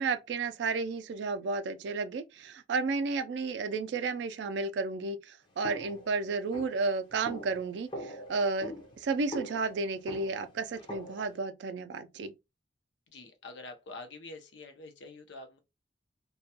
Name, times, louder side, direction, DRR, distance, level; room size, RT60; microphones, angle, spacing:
voice 1, 0.0-12.3, right 4 dB, 75° right, 0.3 m, -32 dB
sound 1, 5.6-11.4, left 1 dB, 25° left, 0.5 m, -44 dB
voice 2, 13.1-15.6, left 3 dB, 80° left, 0.5 m, -46 dB
2.2 x 2.2 x 2.7 m
head